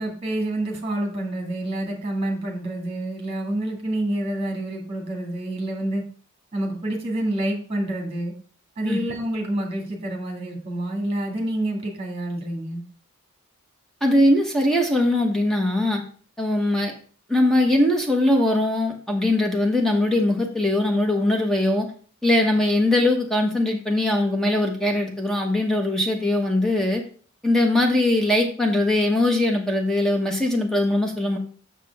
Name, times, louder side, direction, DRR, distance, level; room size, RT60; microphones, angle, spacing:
voice 1, 0.0-6.0 6.5-8.3 8.8-12.8, right 1 dB, 30° right, 0 dB, 2.0 m, -28 dB
voice 2, 14.0-16.0 16.4-16.9 17.3-21.9 22.2-27.0 27.4-31.4, left 1 dB, ahead, 1 dB, 1.0 m, -21 dB
7.4 x 6.6 x 3.5 m, 0.42 s
head